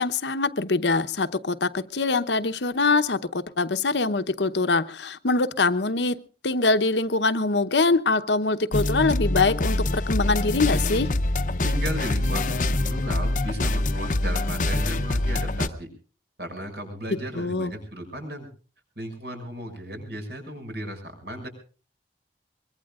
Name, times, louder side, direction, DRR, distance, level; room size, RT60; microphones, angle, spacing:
voice 1, 0.0-6.2 6.4-11.1 17.1-17.7, left 3 dB, 80° left, 0.9 m, -23 dB
sound 1, 8.7-15.7, left 2 dB, 45° left, 0.7 m, -25 dB
voice 2, 11.6-15.9 16.4-18.5 19.0-21.5, equal, 65° right, 6.3 m, -35 dB
23.5 x 22.5 x 2.4 m
head